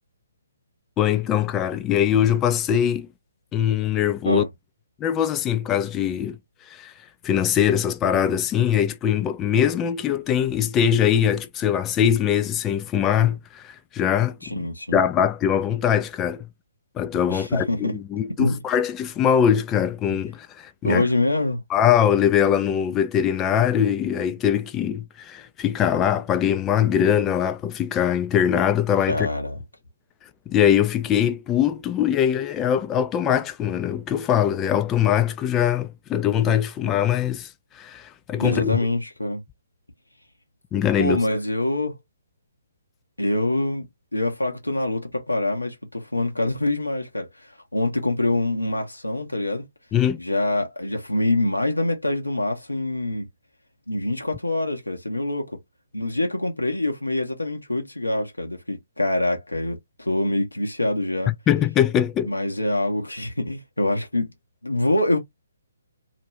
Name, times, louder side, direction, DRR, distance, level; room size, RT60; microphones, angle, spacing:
voice 1, 1.0-3.1 3.5-4.4 5.0-6.4 6.7-6.9 7.2-16.5 17.0-21.0 21.7-29.3 30.5-37.5 37.8-38.8 40.7-41.2 49.9-50.2 61.3-62.3, left 9 dB, 15° left, 0.3 m, -22 dB
voice 2, 14.4-15.0 17.3-17.9 18.4-18.6 20.8-21.6 29.1-29.6 38.3-39.4 41.0-42.0 43.2-43.9 44.1-49.6 50.2-53.3 53.9-55.6 55.9-61.3 62.2-64.3 64.6-65.2, left 1 dB, 85° left, 0.8 m, -25 dB
2.5 x 2.2 x 3.1 m
figure-of-eight pair, 135°, 0 cm